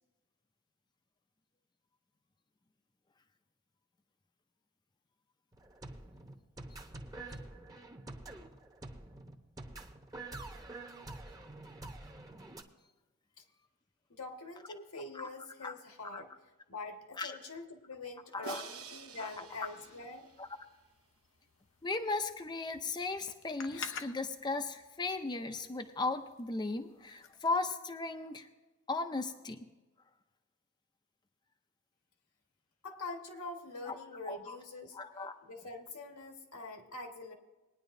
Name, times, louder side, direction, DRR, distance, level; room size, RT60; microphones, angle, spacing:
sound 1, 5.5-12.6, right 2 dB, 15° right, 0.9 m, -47 dB
voice 1, 14.1-16.3 16.7-20.3 32.8-35.0 35.4-37.3, left 3 dB, 85° left, 3 dB, 1.6 m, -45 dB
voice 2, 18.3-18.7 19.2-19.7 20.4-20.5 21.8-28.5 28.9-29.7 33.9-34.0 34.3-34.6 34.9-35.3, left 3 dB, 20° left, 6 dB, 0.5 m, -36 dB
Crash cymbal, 18.4-20.6, right 6 dB, 75° right, 1.0 m, -49 dB
sound 2, 19.1-27.6, left 6 dB, 60° left, 0.7 m, -52 dB
20.0 x 9.9 x 2.6 m, 1.2 s
head